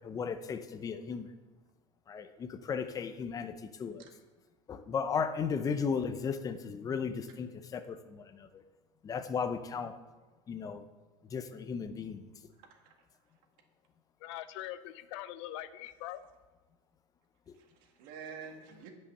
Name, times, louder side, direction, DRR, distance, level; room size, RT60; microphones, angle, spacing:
voice 1, 0.0-1.3 2.1-3.5 3.8-4.0 4.7-8.6 9.0-9.9 10.5-10.8 11.3-12.2, left 6 dB, 25° left, 0.7 m, -35 dB
voice 2, 12.6-12.9 17.5-18.9, right 6 dB, 60° right, 1.9 m, -48 dB
voice 3, 14.2-16.2, left 13 dB, 75° left, 0.7 m, -42 dB
9.9 x 5.5 x 6.7 m
supercardioid pair, 130°, 16 cm